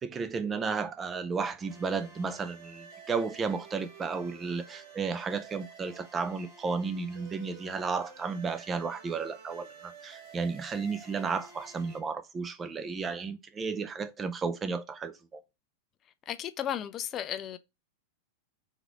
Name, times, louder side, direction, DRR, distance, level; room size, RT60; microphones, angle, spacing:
voice 1, 0.0-15.4, right 5 dB, 20° right, 0.5 m, -33 dB
sound 1, 1.7-12.0, right 5 dB, 50° right, 1.4 m, -51 dB
voice 2, 16.3-17.6, left 10 dB, 35° left, 0.4 m, -34 dB
3.6 x 3.2 x 3.7 m
hypercardioid pair, 95°, 0 cm